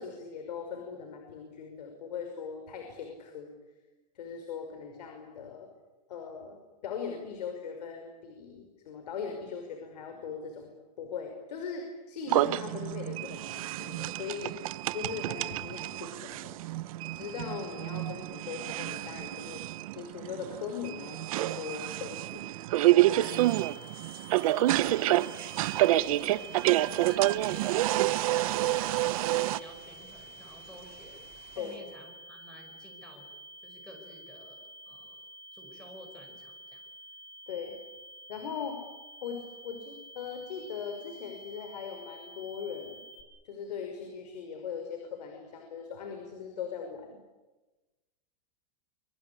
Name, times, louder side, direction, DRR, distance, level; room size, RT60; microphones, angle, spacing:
voice 1, 0.0-3.5 4.1-5.7 6.1-10.7 11.0-14.5 14.9-16.6 17.1-19.6 20.0-22.5 22.8-23.4 24.9-25.2 25.9-26.3 31.6-31.7 37.5-37.8 38.3-38.8 39.2-43.0 43.5-47.2, left 6 dB, 85° left, 4 dB, 5.6 m, -40 dB
sound 1, 12.3-29.6, right 16 dB, 60° right, 0.9 m, -28 dB
sound 2, 23.2-43.2, equal, 25° left, 5.7 m, -50 dB
voice 2, 24.8-25.9 26.3-31.2 31.5-33.3 33.6-35.2 35.5-36.8, equal, 5° left, 3 dB, 5.3 m, -51 dB
sound 3, 25.9-31.8, right 8 dB, 35° right, 5.2 m, -56 dB
25.5 x 25.0 x 8.7 m, 1.2 s
supercardioid pair, 160°, 20 cm